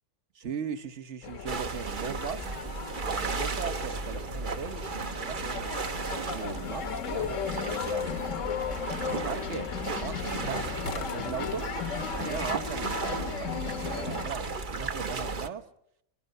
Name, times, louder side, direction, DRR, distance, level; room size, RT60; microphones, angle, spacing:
voice 1, 0.3-2.5 3.0-4.8 5.3-8.4 9.1-11.7 12.1-15.6, right 6 dB, 55° right, 8 dB, 1.4 m, -38 dB
sound 1, 1.2-14.3, left 7 dB, 65° left, 1.4 m, -36 dB
sound 2, 1.5-15.5, right 4 dB, 40° right, 1.1 m, -35 dB
22.5 x 22.5 x 6.6 m, 0.74 s
omnidirectional pair, 1.5 m